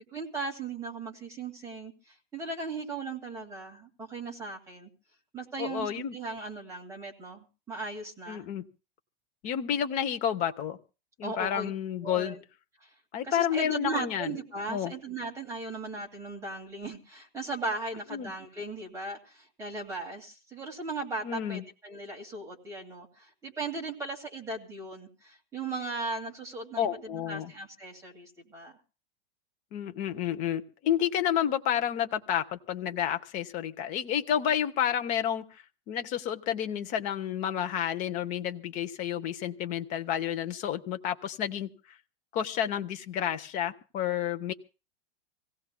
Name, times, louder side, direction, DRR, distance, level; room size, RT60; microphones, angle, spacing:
voice 1, 0.1-4.9 5.3-8.5 11.2-11.7 12.0-12.4 12.8-12.9 13.2-28.8, right 3 dB, 10° right, -1 dB, 2.2 m, -37 dB
voice 2, 5.6-6.2 8.3-8.7 9.4-10.8 11.2-12.4 13.1-14.4 14.7-14.9 18.1-18.3 21.2-21.6 26.8-27.5 29.7-41.7 42.3-44.5, left 10 dB, 25° left, 8 dB, 0.8 m, -30 dB
26.0 x 17.0 x 2.2 m, 0.33 s
supercardioid pair, 165°, 30 cm